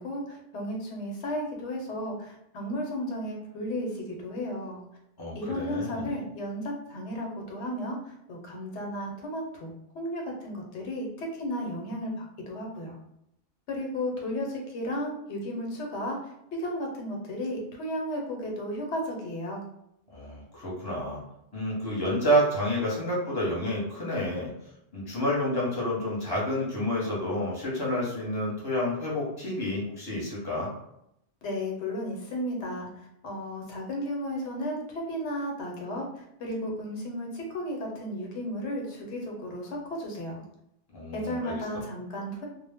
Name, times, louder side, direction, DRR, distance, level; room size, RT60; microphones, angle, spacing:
voice 1, 0.0-4.8 5.3-12.9 13.7-16.3 16.6-19.6 31.4-40.4 41.1-42.5, equal, 90° left, 0 dB, 1.0 m, -34 dB
voice 2, 5.2-6.1 20.1-21.2 21.5-24.5 24.9-30.7 40.9-41.5, equal, 25° left, -5 dB, 0.8 m, -29 dB
2.1 x 2.0 x 3.4 m, 0.78 s
omnidirectional pair, 1.1 m